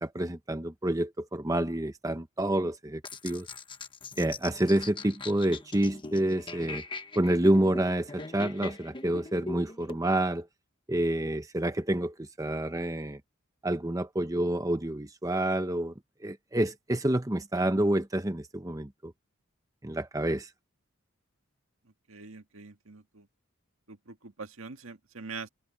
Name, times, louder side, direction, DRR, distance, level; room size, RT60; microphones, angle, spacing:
voice 1, 0.0-3.5 4.2-6.8 7.2-10.5 10.9-13.2 13.6-15.9 16.2-19.1 19.8-20.5, right 1 dB, 15° right, 0.9 m, -28 dB
sound 1, 3.0-10.0, left 3 dB, 25° left, 1.2 m, -41 dB
voice 2, 22.1-23.3 23.9-25.5, right 4 dB, 80° right, 1.9 m, -43 dB
head